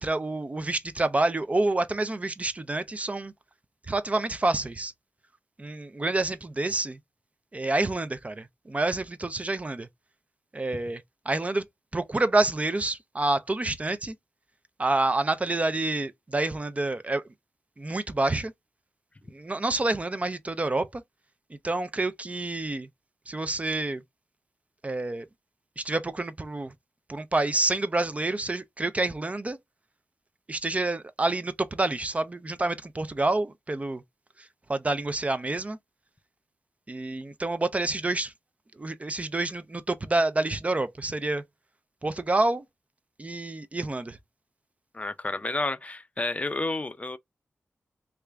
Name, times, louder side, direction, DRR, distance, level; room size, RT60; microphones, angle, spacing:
voice 1, 0.0-3.3 3.9-4.9 5.6-7.0 7.5-9.9 10.5-11.6 11.9-14.1 14.8-17.2 17.8-18.5 19.3-21.0 21.6-22.9 23.3-24.0 24.8-25.3 25.8-26.7 27.1-29.6 30.5-34.0 34.7-35.8 36.9-38.3 38.8-41.4 42.0-42.6 43.2-44.2, right 2 dB, 30° right, 0.5 m, -28 dB
voice 2, 44.9-47.2, left 2 dB, 30° left, 0.4 m, -30 dB
3.3 x 2.4 x 3.3 m
cardioid pair, 65°, 5 cm